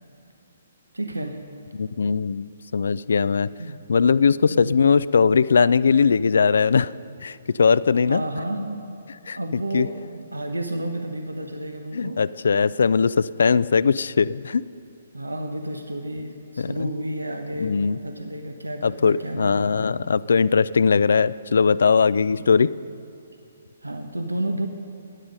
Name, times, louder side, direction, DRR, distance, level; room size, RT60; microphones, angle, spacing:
voice 1, 0.9-1.4 3.6-3.8 4.5-4.8 8.1-8.8 9.3-12.2 15.1-19.9 22.3-22.5 23.8-24.7, right 1 dB, 85° right, 6 dB, 1.0 m, -31 dB
voice 2, 1.7-3.5 3.9-6.9 7.2-8.2 9.3-9.4 9.7-9.9 11.9-14.6 16.6-16.7 17.6-18.0 18.8-22.7, left 5 dB, 65° left, 17 dB, 0.3 m, -20 dB
15.5 x 9.9 x 5.4 m, 2.5 s
figure-of-eight pair, 130°, 0 cm